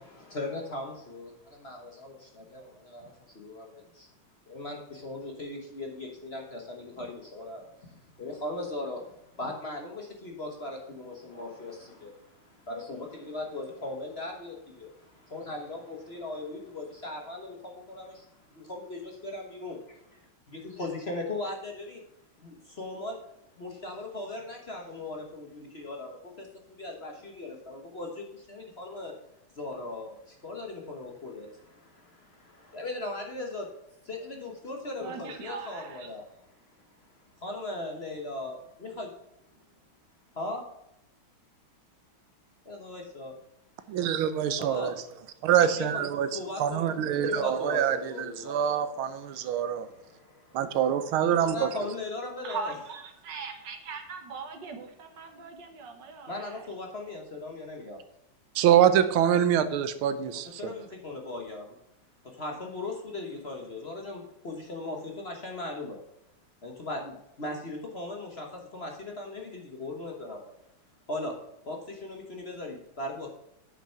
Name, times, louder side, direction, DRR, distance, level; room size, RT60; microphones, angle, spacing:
voice 1, 0.0-4.1 4.5-19.8 20.5-22.0 22.4-23.2 23.6-29.1 29.5-33.7 34.0-36.2 36.8-36.9 37.4-39.1 40.3-40.6 42.6-43.4 44.6-44.9 45.4-46.1 46.3-48.8 50.1-50.6 51.4-52.7 56.3-58.0 60.6-61.8 62.2-66.0 66.6-70.5 71.1-71.4 71.6-73.3, left 2 dB, 35° left, 1 dB, 1.2 m, -38 dB
voice 2, 35.0-36.1 52.4-56.7, right 5 dB, 60° right, 6 dB, 1.9 m, -40 dB
voice 3, 43.9-45.0 45.4-49.9 50.5-51.7 58.5-60.7, right 9 dB, 90° right, 12 dB, 1.6 m, -25 dB
8.9 x 6.1 x 5.6 m, 0.84 s
omnidirectional pair, 2.2 m